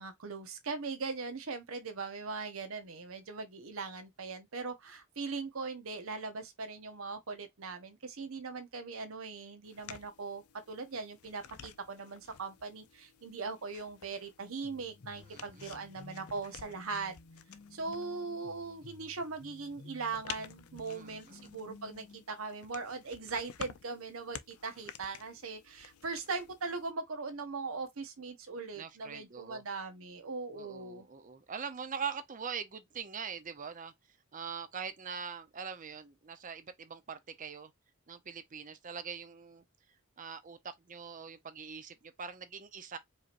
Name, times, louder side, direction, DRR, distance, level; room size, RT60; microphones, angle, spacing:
voice 1, 0.0-17.2 17.7-31.1, right 4 dB, 70° right, 0.9 m, -40 dB
sound 1, 9.6-26.9, left 9 dB, 90° left, 0.5 m, -52 dB
sound 2, 14.6-22.2, left 3 dB, 40° left, 0.6 m, -54 dB
voice 2, 15.2-15.8 20.9-21.5 28.8-29.6 30.6-33.9 34.3-37.7 38.1-39.6 40.2-43.0, right 6 dB, 35° right, 0.6 m, -43 dB
4.8 x 2.9 x 2.5 m
head